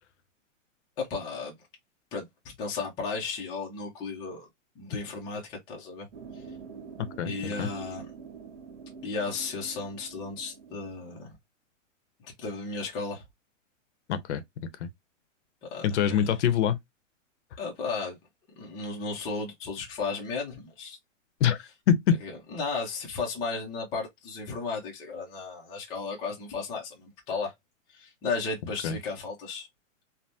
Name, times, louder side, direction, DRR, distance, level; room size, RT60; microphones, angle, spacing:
voice 1, 1.0-1.5 2.1-2.3 2.6-4.5 4.8-6.1 7.2-8.1 9.0-11.3 12.2-13.2 15.7-16.2 17.6-18.2 18.6-21.0 22.2-27.5 27.9-29.7, left 4 dB, 10° left, 0.4 m, -34 dB
sound 1, 6.1-11.1, right 5 dB, 65° right, 1.2 m, -45 dB
voice 2, 7.0-7.3 7.6-7.7 14.1-14.4 14.8-14.9 15.8-16.8 21.4-21.6 21.9-22.2 28.8-29.0, left 8 dB, 60° left, 0.7 m, -24 dB
3.3 x 2.0 x 2.6 m
hypercardioid pair, 145°, 39 cm